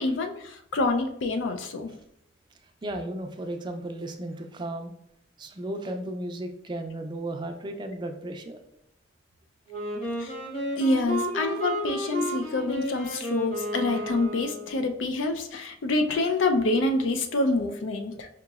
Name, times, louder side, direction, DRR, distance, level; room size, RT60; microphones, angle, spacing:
voice 1, 0.0-1.9 10.2-10.3 10.8-18.3, left 2 dB, 80° left, 5 dB, 0.4 m, -27 dB
voice 2, 2.8-4.9 5.4-8.7, right 1 dB, 25° right, 5 dB, 0.3 m, -35 dB
Wind instrument woodwind instrument, 9.7-14.9, equal, 35° left, 1.2 m, -32 dB
4.8 x 2.9 x 2.3 m, 0.76 s
head